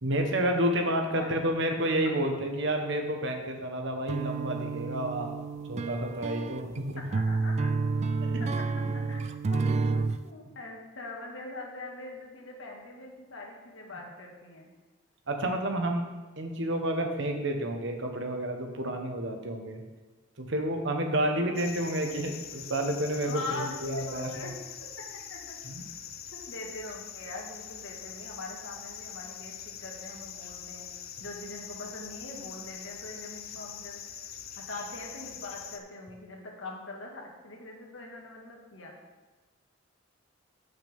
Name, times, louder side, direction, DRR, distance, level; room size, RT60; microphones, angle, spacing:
voice 1, 0.0-5.3 5.7-7.0 8.2-8.4 15.3-16.1 16.4-19.8 20.4-24.5 25.6-25.8, right 1 dB, 60° right, 4 dB, 1.2 m, -30 dB
sound 1, 4.1-10.2, right 4 dB, 35° right, 0.3 m, -30 dB
voice 2, 7.0-7.7 8.5-14.7 21.1-21.6 23.3-24.5 25.3-25.5 26.5-30.9 31.2-34.3 34.6-38.9, left 2 dB, 70° left, 0 dB, 1.8 m, -42 dB
sound 2, 21.5-35.8, left 9 dB, 50° left, 0.6 m, -43 dB
13.5 x 6.0 x 3.6 m, 1.2 s
head